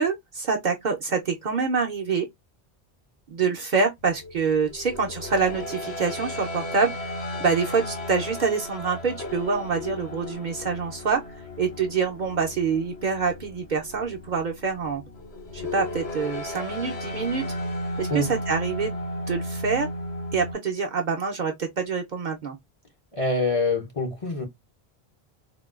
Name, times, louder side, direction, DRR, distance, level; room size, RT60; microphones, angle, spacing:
voice 1, 0.0-2.3 3.3-7.1 7.4-11.2 11.6-15.0 15.5-17.5 18.0-19.9 20.3-22.6, right 5 dB, 55° right, 0.6 m, -26 dB
sound 1, 4.2-20.5, left 1 dB, 85° left, 1.1 m, -35 dB
voice 2, 23.1-24.4, left 2 dB, 40° left, 0.6 m, -25 dB
3.6 x 2.2 x 2.3 m
omnidirectional pair, 1.1 m